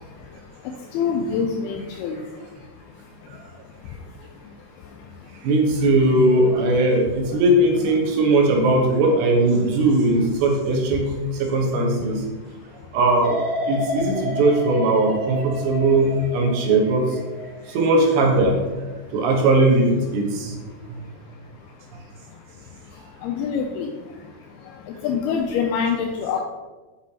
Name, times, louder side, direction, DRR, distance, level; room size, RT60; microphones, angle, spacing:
voice 1, 0.9-2.2 23.2-23.9 24.9-26.4, left 6 dB, 85° left, 3 dB, 2.3 m, -25 dB
voice 2, 5.4-11.1 11.4-12.2 12.9-13.4 13.7-17.0 17.7-18.6 19.1-20.5, right 2 dB, 80° right, 0 dB, 3.3 m, -19 dB
sound 1, 13.2-20.2 20.6-21.0, left 1 dB, 60° right, 1.7 m, -32 dB
8.2 x 6.1 x 2.9 m, 1.2 s
omnidirectional pair, 5.0 m